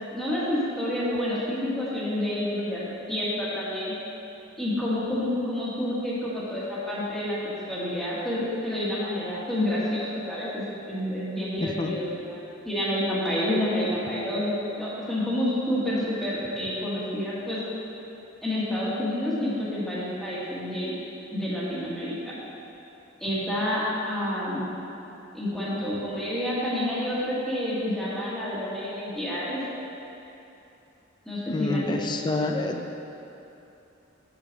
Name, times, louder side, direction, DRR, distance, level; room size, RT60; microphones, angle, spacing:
voice 1, 0.1-3.9 4.6-12.4 12.6-17.6 18.4-21.0 21.3-22.3 23.2-24.7 25.3-29.6 31.3-32.0 32.3-32.5, left 1 dB, ahead, -9 dB, 1.3 m, -29 dB
voice 2, 11.6-12.0 31.5-33.0, left 2 dB, 20° left, 4 dB, 0.4 m, -28 dB
6.8 x 6.4 x 3.9 m, 2.8 s
head